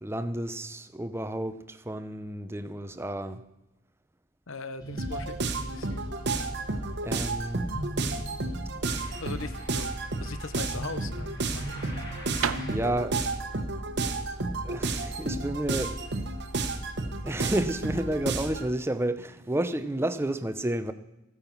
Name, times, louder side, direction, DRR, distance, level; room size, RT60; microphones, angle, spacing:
voice 1, 0.0-3.4 7.0-7.7 12.7-13.3 14.6-16.0 17.2-20.9, right 1 dB, 10° right, 0.6 m, -31 dB
voice 2, 4.5-6.0 9.2-9.9 10.2-11.9, left 4 dB, 70° left, 0.9 m, -40 dB
sound 1, 4.8-12.8, right 1 dB, 20° left, 2.4 m, -41 dB
sound 2, 5.0-18.7, right 3 dB, 55° right, 1.2 m, -32 dB
sound 3, 12.3-16.2, right 7 dB, 75° right, 0.6 m, -37 dB
14.5 x 8.9 x 6.0 m
head